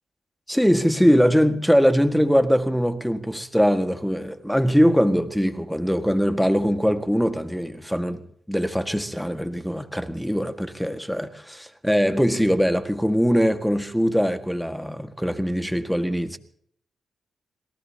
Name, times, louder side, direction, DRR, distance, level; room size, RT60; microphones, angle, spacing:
voice 1, 0.5-8.2 8.5-16.4, equal, ahead, 1.8 m, -22 dB
27.0 x 18.0 x 2.9 m
supercardioid pair, 45°, 0 cm